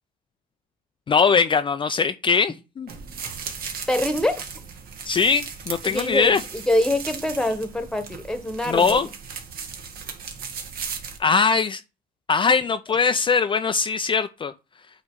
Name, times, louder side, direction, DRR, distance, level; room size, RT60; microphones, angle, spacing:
voice 1, 1.1-2.9 5.1-6.4 8.7-9.1 11.2-11.8 12.3-14.5, left 5 dB, 30° left, 0.4 m, -21 dB
sound 1, 2.9-11.2, right 6 dB, 65° right, 1.6 m, -36 dB
voice 2, 3.9-4.5 5.8-9.0, left 1 dB, 5° left, 1.2 m, -24 dB
8.7 x 3.1 x 4.6 m
cardioid pair, 110°, 17 cm